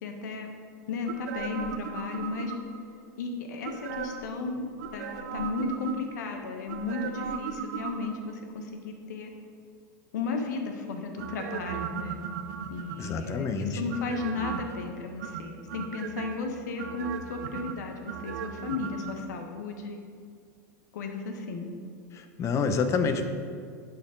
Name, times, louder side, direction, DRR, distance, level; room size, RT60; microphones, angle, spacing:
voice 1, 0.0-0.5 0.9-2.5 3.2-9.3 10.1-12.2 12.7-20.0 20.9-21.7, left 4 dB, 80° left, 4 dB, 1.1 m, -34 dB
sound 1, 1.1-2.9 3.6-4.3 4.8-6.2 6.7-8.4 11.2-13.3 13.9-14.8 15.2-16.4 16.8-19.1 19.4-19.5, right 7 dB, 75° right, 0.6 m, -37 dB
voice 2, 13.0-13.7 22.1-23.2, left 5 dB, 30° left, 8 dB, 0.7 m, -28 dB
9.8 x 4.5 x 3.8 m, 2.2 s
hypercardioid pair, 115°, 9 cm